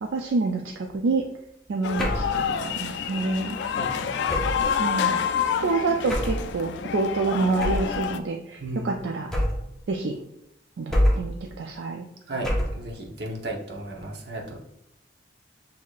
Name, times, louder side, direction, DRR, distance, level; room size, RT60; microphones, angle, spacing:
voice 1, 0.0-1.2 1.7-3.6 4.8-5.2 5.6-9.3 9.9-10.2 10.8-12.1, right 3 dB, 75° right, 2 dB, 0.4 m, -27 dB
sound 1, 1.8-8.2, left 7 dB, 70° left, 0.3 m, -28 dB
sound 2, 2.0-2.4 4.3-4.7 6.1-6.5 7.6-8.0 9.3-9.8 10.9-11.4 12.4-12.9, equal, 5° left, 0.7 m, -25 dB
voice 2, 3.8-4.6 8.6-9.1 12.3-14.6, right 1 dB, 60° right, -1 dB, 0.8 m, -35 dB
6.3 x 2.8 x 2.4 m, 0.79 s
head